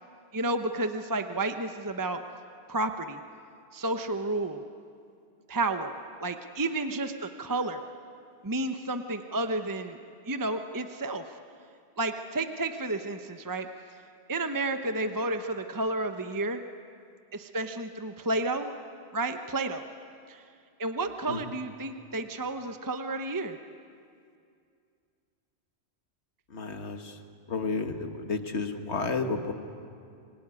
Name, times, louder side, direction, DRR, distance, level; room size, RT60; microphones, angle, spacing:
voice 1, 0.3-2.2 2.7-3.2 3.7-4.6 5.5-5.9 6.2-7.8 8.4-10.0 10.3-11.2 12.0-13.7 14.3-16.6 17.3-18.7 19.1-19.8 20.3-20.4 20.8-23.6, right 2 dB, 20° right, 7 dB, 0.9 m, -31 dB
voice 2, 26.5-27.0 27.5-29.5, left 4 dB, 70° left, 6 dB, 2.0 m, -31 dB
26.0 x 23.5 x 9.8 m, 2.4 s
omnidirectional pair, 1.2 m